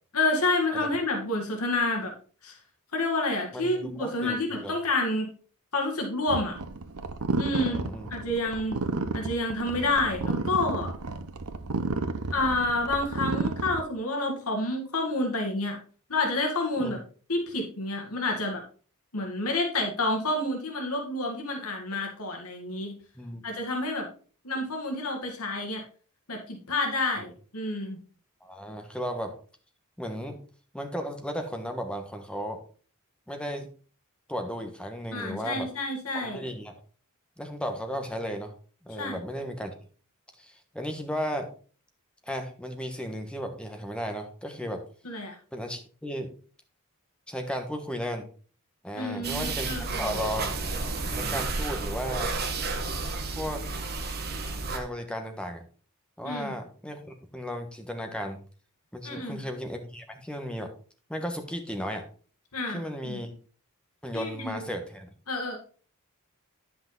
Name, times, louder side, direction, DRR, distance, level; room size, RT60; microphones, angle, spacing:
voice 1, 0.1-2.1 2.4-2.5 2.9-5.3 5.7-6.5 7.4-7.8 8.1-8.8 9.1-10.9 12.3-15.8 16.1-17.0 17.3-18.6 19.1-23.0 23.4-24.1 24.4-25.8 26.3-28.0 35.1-36.4 39.0-39.2 45.0-45.4 48.9-50.1 56.2-56.5 59.0-59.4 62.5-63.2 64.1-64.7 65.3-65.6, left 2 dB, 80° left, 2 dB, 1.9 m, -29 dB
voice 2, 3.5-4.7 7.5-8.1 16.8-16.9 23.1-23.4 27.2-27.3 28.4-29.4 30.0-30.4 30.7-32.6 33.3-33.7 34.3-35.7 36.1-36.7 37.4-38.5 38.8-39.7 40.4-41.5 42.2-44.8 45.5-46.3 47.3-48.3 48.8-50.6 51.1-52.3 53.3-53.6 54.7-55.6 56.2-57.0 57.3-58.4 58.9-60.7 61.1-62.0 62.7-63.3 64.0-65.1, equal, 5° left, 4 dB, 1.3 m, -35 dB
sound 1, 6.3-13.8, right 3 dB, 80° right, 0.8 m, -32 dB
sound 2, 49.2-54.8, right 3 dB, 45° right, 1.4 m, -31 dB
10.0 x 5.9 x 3.9 m, 0.40 s
head